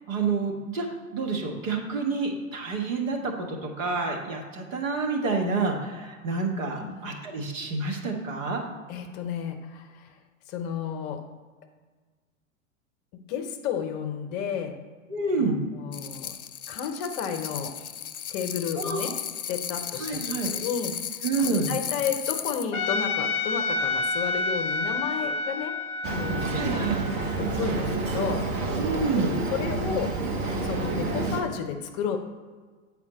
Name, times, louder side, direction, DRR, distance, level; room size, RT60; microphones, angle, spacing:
voice 1, 0.1-0.9 1.1-8.6 15.1-15.6 18.8-19.1 20.0-20.5 21.2-21.7 26.5-27.0 28.8-29.3, right 4 dB, 65° right, 1 dB, 1.6 m, -28 dB
voice 2, 6.7-7.2 8.9-10.2 10.5-11.2 13.1-14.8 15.4-16.4 16.7-17.8 18.3-19.1 19.4-25.8 26.1-26.8 27.4-28.7 29.1-30.1 30.6-32.2, left 7 dB, 35° left, 6 dB, 0.7 m, -32 dB
sound 1, 15.9-22.7, left 8 dB, 80° left, 0.6 m, -35 dB
Trumpet, 22.7-27.9, left 3 dB, 20° left, 0.4 m, -29 dB
Boat Water vehicle, 26.0-31.4, right 3 dB, 35° right, 1.1 m, -28 dB
8.6 x 4.2 x 4.1 m, 1.5 s
figure-of-eight pair, 100°, 42 cm